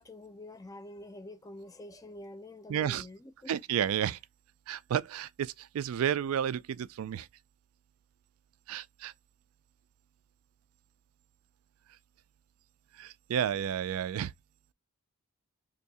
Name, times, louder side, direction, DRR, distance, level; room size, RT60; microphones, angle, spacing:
voice 1, 0.0-3.5, left 1 dB, 15° left, 0.4 m, -47 dB
voice 2, 2.7-3.1 3.5-4.2 4.7-7.3 8.7-9.1 13.0-14.3, right 9 dB, 75° right, 0.3 m, -31 dB
2.8 x 2.7 x 4.0 m
head